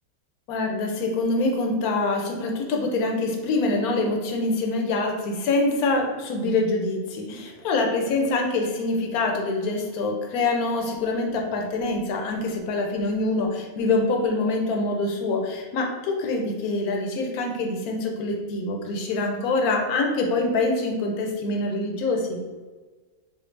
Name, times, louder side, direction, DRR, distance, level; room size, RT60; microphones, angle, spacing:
voice 1, 0.5-22.4, left 2 dB, 85° left, 2 dB, 1.1 m, -25 dB
4.4 x 2.6 x 2.5 m, 1.3 s
omnidirectional pair, 1.5 m